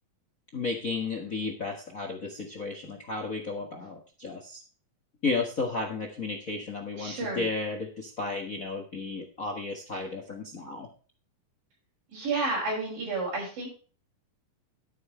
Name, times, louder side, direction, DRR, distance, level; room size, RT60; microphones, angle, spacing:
voice 1, 0.5-4.6 5.2-10.9, left 3 dB, 65° left, 3 dB, 0.8 m, -33 dB
voice 2, 7.0-7.5 12.1-13.7, right 3 dB, 70° right, -4 dB, 7.3 m, -31 dB
11.0 x 9.6 x 3.2 m, 0.39 s
omnidirectional pair, 4.1 m